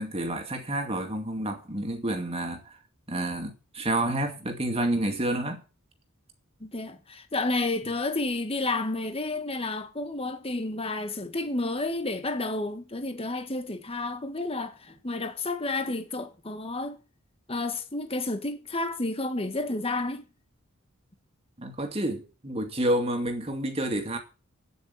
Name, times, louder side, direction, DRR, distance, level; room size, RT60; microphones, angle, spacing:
voice 1, 0.0-2.8 3.1-5.6 21.6-24.2, right 1 dB, 30° right, 2.4 m, -29 dB
voice 2, 6.6-16.9 17.5-20.2, left 2 dB, 25° left, 1.5 m, -31 dB
9.4 x 8.3 x 8.4 m
head